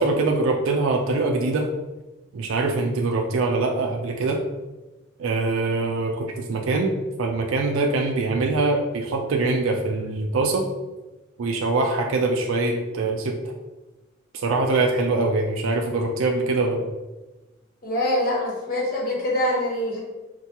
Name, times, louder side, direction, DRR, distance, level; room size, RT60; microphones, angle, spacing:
voice 1, 0.0-1.7 2.3-4.4 5.2-10.7 11.4-13.5 14.3-16.9, right 3 dB, 85° right, 2 dB, 0.4 m, -23 dB
voice 2, 17.8-20.0, left 1 dB, 45° left, -3 dB, 1.0 m, -24 dB
4.4 x 2.3 x 2.8 m, 1.1 s
head